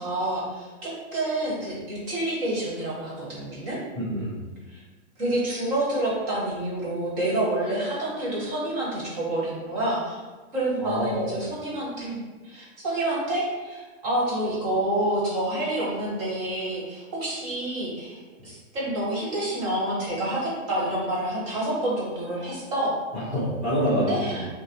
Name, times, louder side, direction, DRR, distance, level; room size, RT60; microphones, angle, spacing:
voice 1, 0.0-3.8 4.7-4.8 5.2-10.2 10.5-22.9 23.9-24.5, right 1 dB, 30° right, -6 dB, 1.4 m, -28 dB
voice 2, 4.0-4.4 10.8-11.4 23.1-24.5, equal, 5° left, -16 dB, 0.8 m, -27 dB
5.8 x 2.2 x 3.1 m, 1.3 s
hypercardioid pair, 165°, 39 cm